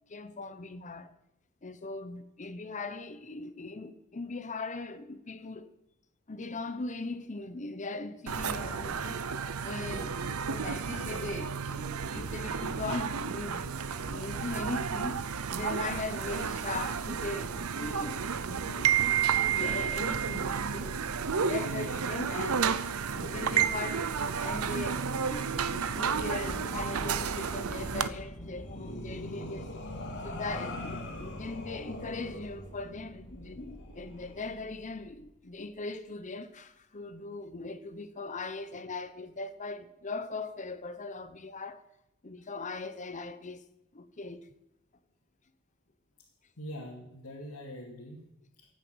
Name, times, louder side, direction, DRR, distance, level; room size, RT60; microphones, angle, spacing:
voice 1, 0.1-1.1 1.6-5.7 6.3-9.4 9.6-13.7 14.1-15.2 15.5-19.0 19.5-21.0 21.4-22.9 23.1-29.7 30.2-41.8 42.2-43.6 43.9-44.5, left 3 dB, 35° left, 0.9 m, -39 dB
sound 1, 8.3-28.1, right 7 dB, 80° right, 0.7 m, -31 dB
sound 2, 25.5-34.5, left 1 dB, 55° left, 2.4 m, -43 dB
sound 3, 25.9-35.6, equal, 5° left, 1.4 m, -48 dB
voice 2, 46.6-48.7, equal, 90° left, 2.6 m, -44 dB
14.5 x 9.3 x 7.9 m
head